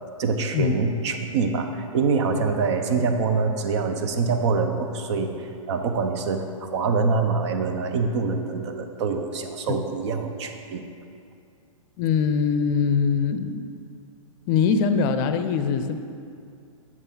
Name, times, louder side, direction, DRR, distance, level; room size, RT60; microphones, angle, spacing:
voice 1, 0.2-10.8, right 4 dB, 55° right, 6 dB, 0.9 m, -25 dB
voice 2, 12.0-13.6 14.5-16.0, left 6 dB, 35° left, 10 dB, 0.6 m, -22 dB
8.0 x 7.4 x 3.9 m, 2.4 s
hypercardioid pair, 120°, 18 cm